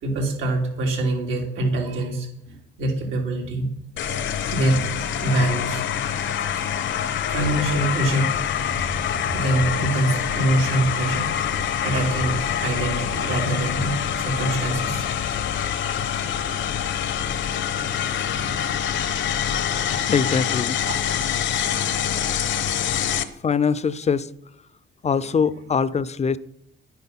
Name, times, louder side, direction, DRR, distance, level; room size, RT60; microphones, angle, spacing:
voice 1, 0.0-3.7 3.9-4.9 5.2-5.8 7.3-8.3 8.7-8.8 9.3-11.3 11.7-15.0 15.6-15.9 17.9-18.4 19.8-19.9 20.9-21.0, right 1 dB, 85° right, 3.1 m, -25 dB
sound 1, 4.0-23.2, left 9 dB, 70° left, 0.9 m, -25 dB
voice 2, 20.1-20.8 23.1-24.3 25.0-26.4, left 6 dB, 35° left, 0.5 m, -23 dB
9.6 x 9.5 x 5.9 m
cardioid pair, 90°, 20 cm